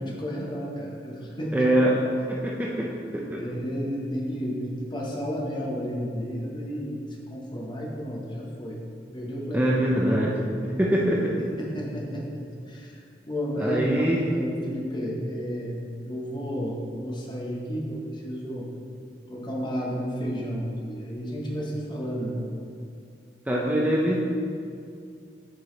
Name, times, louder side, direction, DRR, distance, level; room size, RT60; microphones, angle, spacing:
voice 1, 0.0-1.5 3.4-8.8 9.1-9.7 11.6-13.0 13.3-18.7 19.3-22.5, equal, 25° left, -2 dB, 0.8 m, -32 dB
voice 2, 1.5-2.0 2.3-2.9 3.1-3.4 9.5-10.4 10.8-11.4 13.6-14.2 23.5-24.2, right 1 dB, 10° right, -3 dB, 0.4 m, -23 dB
6.3 x 4.7 x 3.8 m, 2.4 s
head